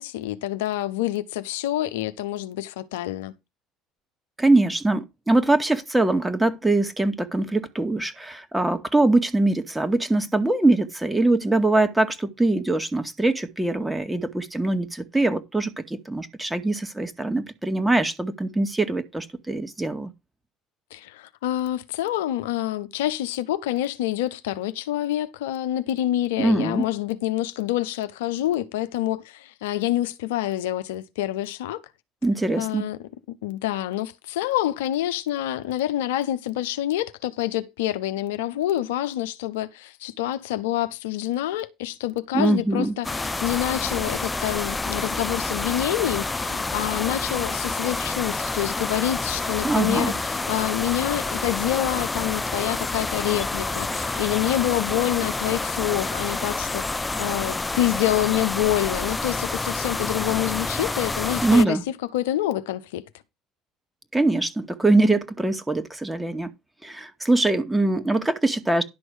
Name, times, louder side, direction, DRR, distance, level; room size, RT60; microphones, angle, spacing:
voice 1, 0.0-3.3 20.9-31.8 32.6-33.0 33.3-61.8 62.1-63.1, left 13 dB, 75° left, 0.8 m, -27 dB
voice 2, 4.4-20.1 26.4-26.8 32.2-32.9 42.3-43.0 49.6-50.1 61.4-61.8 64.1-66.5 66.8-68.8, right 2 dB, 10° right, 2.0 m, -22 dB
sound 1, 43.0-61.6, left 3 dB, 20° left, 0.6 m, -28 dB
11.0 x 6.2 x 4.9 m
hypercardioid pair, 60°, 0 cm